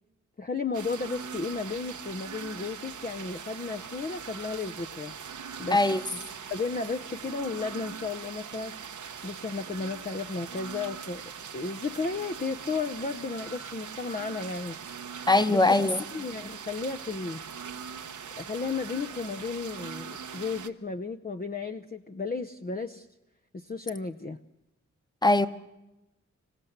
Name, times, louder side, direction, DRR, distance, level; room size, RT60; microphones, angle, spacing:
voice 1, 0.4-5.1 5.6-5.8 6.5-8.8 9.2-11.2 11.5-14.8 15.5-15.6 16.1-17.4 18.4-23.1 23.5-24.4, left 4 dB, 30° left, 0.8 m, -33 dB
sound 1, 0.7-20.7, right 7 dB, 85° right, 1.0 m, -41 dB
voice 2, 5.7-6.0 15.3-16.0 25.2-25.5, left 2 dB, 15° left, 1.3 m, -21 dB
26.5 x 16.0 x 8.0 m
wide cardioid pair, 65°, 29 cm